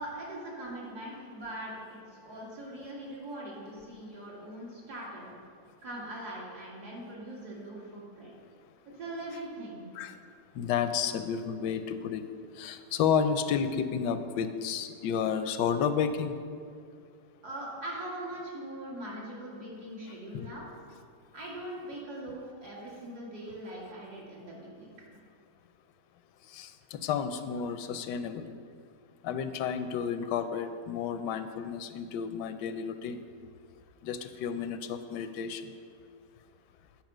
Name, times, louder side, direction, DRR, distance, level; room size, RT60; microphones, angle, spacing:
voice 1, 0.0-5.3 5.8-8.3 9.0-9.9 17.4-20.7 21.3-24.9, right 1 dB, 65° right, -5 dB, 2.6 m, -41 dB
voice 2, 10.5-12.2 12.5-16.3 20.3-20.5 26.5-28.5 29.2-33.2 34.0-35.6, left 7 dB, 80° left, 10 dB, 1.2 m, -31 dB
8.9 x 5.4 x 6.1 m, 2.2 s
omnidirectional pair, 1.8 m